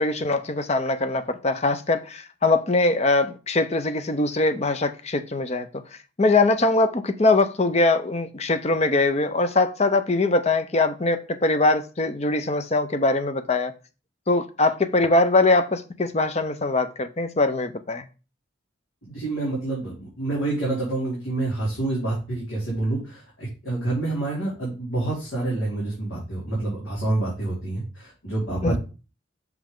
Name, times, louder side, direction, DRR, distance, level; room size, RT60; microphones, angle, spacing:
voice 1, 0.0-5.7 6.2-13.7 14.3-18.0 28.6-28.8, left 2 dB, 30° left, 0.6 m, -22 dB
voice 2, 19.1-28.8, right 2 dB, 80° left, 2.9 m, -27 dB
6.0 x 5.3 x 3.7 m
head